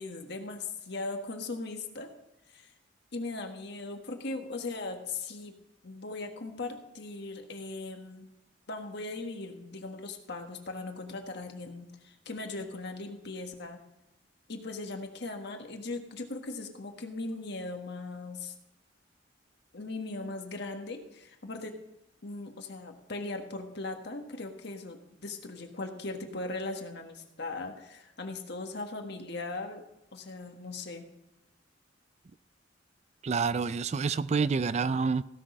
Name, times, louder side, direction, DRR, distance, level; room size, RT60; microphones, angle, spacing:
voice 1, 0.0-2.1 2.5-2.7 3.1-5.5 5.8-8.3 8.7-13.8 14.5-18.5 19.7-21.7 22.2-29.8 30.1-31.1, left 3 dB, 65° left, 1.6 m, -39 dB
voice 2, 33.2-35.2, right 5 dB, 35° right, 0.4 m, -28 dB
16.0 x 6.3 x 5.4 m
head